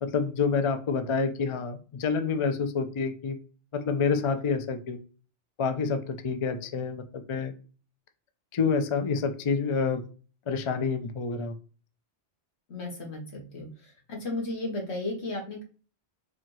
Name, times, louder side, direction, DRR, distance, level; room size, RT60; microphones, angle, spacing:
voice 1, 0.0-3.4 3.7-5.0 5.6-7.5 8.5-10.0 10.5-11.5, left 5 dB, 45° left, 7 dB, 0.4 m, -28 dB
voice 2, 12.7-13.7 14.1-15.6, left 2 dB, 80° left, -1 dB, 1.6 m, -34 dB
4.2 x 2.7 x 3.0 m, 0.38 s
omnidirectional pair, 1.1 m